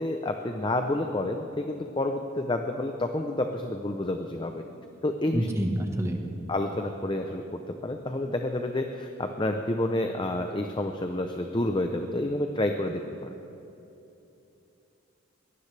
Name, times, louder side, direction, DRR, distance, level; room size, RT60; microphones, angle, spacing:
voice 1, 0.0-4.6 5.0-5.5 6.5-7.4 7.8-13.3, left 1 dB, 25° left, 5 dB, 0.6 m, -29 dB
voice 2, 5.3-6.2, right 1 dB, 15° right, 3 dB, 1.2 m, -27 dB
21.5 x 18.0 x 3.3 m, 2.9 s
head